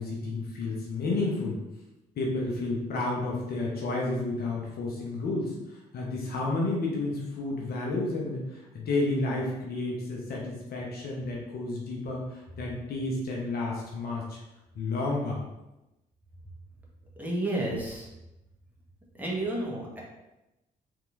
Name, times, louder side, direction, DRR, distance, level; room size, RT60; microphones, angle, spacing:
voice 1, 0.0-1.6 2.2-14.4 14.7-15.4, left 2 dB, 50° left, -2 dB, 1.0 m, -31 dB
voice 2, 17.2-18.1 19.2-20.0, right 1 dB, 10° right, -4 dB, 1.3 m, -31 dB
4.6 x 3.5 x 2.6 m, 0.96 s
figure-of-eight pair, 40°, 21 cm